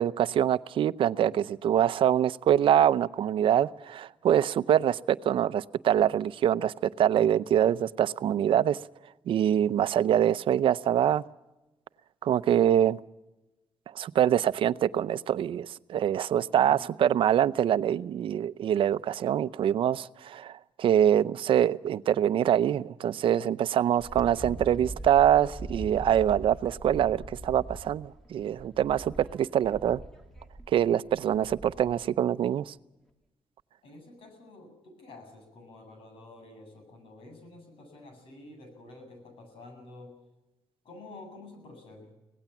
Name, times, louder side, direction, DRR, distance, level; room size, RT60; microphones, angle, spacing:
voice 1, 0.0-8.8 9.3-11.2 12.2-13.0 13.9-30.0 30.7-32.7, right 10 dB, 70° right, 0.6 m, -24 dB
voice 2, 16.6-16.9 33.8-40.2 40.8-42.1, left 2 dB, 80° left, 8.0 m, -49 dB
Wind, 24.0-32.1, right 2 dB, 5° left, 2.5 m, -42 dB
25.0 x 18.0 x 7.2 m
cardioid pair, 110°, 9 cm